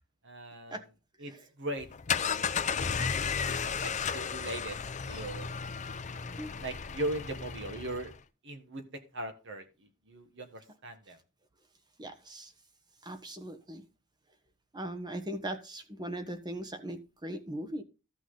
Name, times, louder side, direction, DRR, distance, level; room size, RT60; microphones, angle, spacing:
voice 1, 0.2-0.8 1.2-1.3 1.6-3.1 3.4-4.8 5.1-5.5 6.6-8.1 8.4-8.8 9.1-9.6 10.1-11.2, right 1 dB, 60° right, 7 dB, 1.6 m, -39 dB
sound 1, 1.8-8.2, left 6 dB, 35° left, 0.6 m, -34 dB
voice 2, 12.0-12.5 13.0-13.8 14.7-17.8, right 1 dB, 20° right, 8 dB, 1.1 m, -39 dB
13.5 x 6.1 x 3.8 m, 0.31 s
head